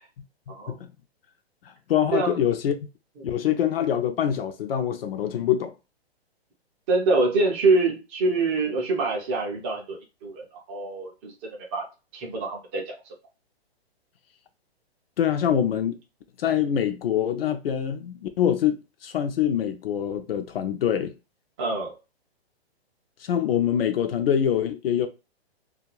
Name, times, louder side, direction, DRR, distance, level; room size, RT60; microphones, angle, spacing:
voice 1, 1.9-2.9 3.2-5.7 15.2-16.0 16.4-21.1 23.2-25.1, left 9 dB, 65° left, 0.5 m, -24 dB
voice 2, 6.9-11.3 11.7-11.8 12.1-12.8 21.6-21.9, right 3 dB, 15° right, 0.3 m, -25 dB
2.4 x 2.3 x 2.9 m
hypercardioid pair, 135°, 32 cm